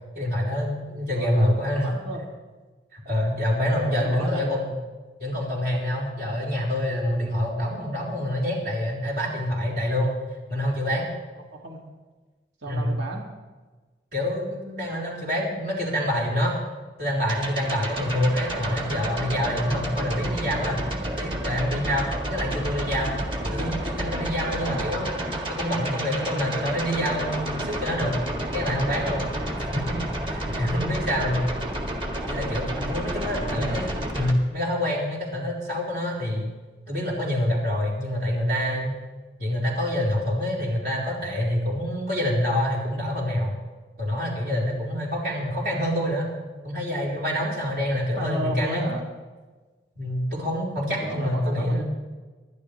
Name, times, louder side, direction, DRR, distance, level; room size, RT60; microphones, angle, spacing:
voice 1, 0.1-1.9 2.9-4.7 5.2-10.1 10.5-11.1 12.7-12.9 14.1-16.6 17.0-23.1 23.5-28.2 28.5-30.0 30.3-31.4 32.3-33.9 34.1-36.5 36.9-39.0 39.4-43.5 44.0-46.3 46.6-48.8 50.0-51.8, equal, 55° right, -4 dB, 4.3 m, -26 dB
voice 2, 1.1-2.2 3.8-4.6 11.3-11.9 12.6-13.2 23.4-23.8 24.6-24.9 33.2-33.8 48.2-49.0 50.9-51.8, right 1 dB, 75° right, -2 dB, 2.7 m, -34 dB
sound 1, 17.3-34.3, right 1 dB, 25° right, 1.8 m, -30 dB
26.5 x 12.0 x 3.4 m, 1.3 s
head